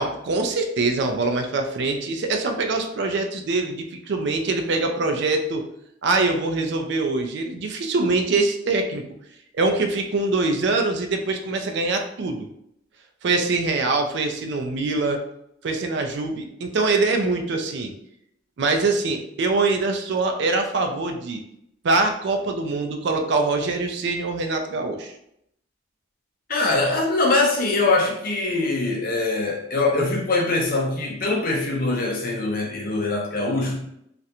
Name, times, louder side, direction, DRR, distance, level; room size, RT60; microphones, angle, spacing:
voice 1, 0.0-5.7 6.0-9.1 9.5-12.5 13.2-15.2 15.6-17.9 18.6-21.4 21.8-25.1, right 3 dB, 60° right, 5 dB, 0.4 m, -23 dB
voice 2, 26.5-33.8, left 2 dB, 50° left, -1 dB, 0.6 m, -23 dB
2.4 x 2.1 x 2.8 m, 0.76 s
head